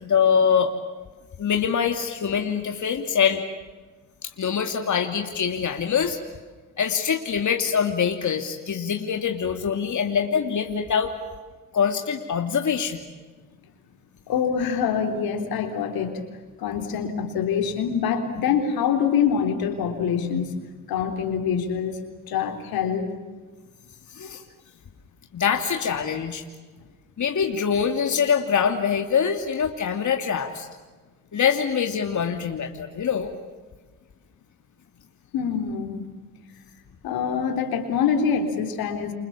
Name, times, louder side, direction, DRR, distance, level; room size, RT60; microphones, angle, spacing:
voice 1, 0.0-0.7 1.4-3.4 4.2-6.2 6.8-11.1 11.7-13.0 24.1-24.4 25.3-26.4 27.2-30.7 31.3-33.3, left 7 dB, 55° left, 4 dB, 2.8 m, -24 dB
voice 2, 14.3-16.2 16.6-20.5 20.9-22.0 22.3-23.1 35.3-36.0 37.0-39.1, left 7 dB, 80° left, 5 dB, 3.8 m, -25 dB
29.5 x 27.0 x 7.3 m, 1.3 s
supercardioid pair, 55°, 36 cm